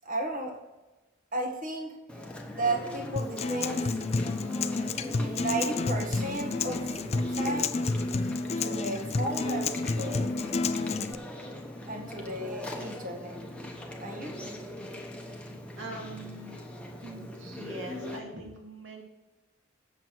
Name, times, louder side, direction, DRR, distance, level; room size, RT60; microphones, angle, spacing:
voice 1, 0.0-0.6 1.3-2.0 2.5-4.0 5.0-7.8 8.6-10.4 11.9-13.4 14.0-14.4, right 2 dB, 45° right, 1 dB, 1.6 m, -34 dB
Chewing mastication, 2.1-18.2, left 1 dB, 5° left, 1.1 m, -40 dB
Acoustic guitar, 3.2-11.1, left 3 dB, 30° left, 0.4 m, -30 dB
voice 2, 15.8-16.6 17.0-19.0, right 2 dB, 70° right, 0 dB, 2.3 m, -42 dB
7.8 x 7.3 x 4.6 m, 1.1 s
head